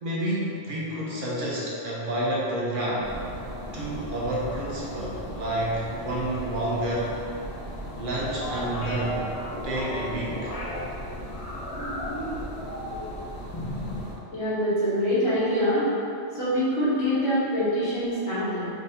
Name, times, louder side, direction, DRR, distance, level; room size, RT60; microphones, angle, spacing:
voice 1, 0.0-3.1 3.7-7.1 7.9-9.2 9.6-10.5, right 1 dB, 55° right, -6 dB, 0.8 m, -29 dB
sound 1, 3.0-14.1, equal, 55° left, 1.7 m, -38 dB
sound 2, 8.4-10.8 11.3-13.1 13.5-14.0, left 1 dB, 40° left, 0.7 m, -35 dB
voice 2, 14.3-15.8 16.3-18.7, equal, 80° left, -10 dB, 1.5 m, -24 dB
3.5 x 3.4 x 2.7 m, 2.6 s
omnidirectional pair, 1.1 m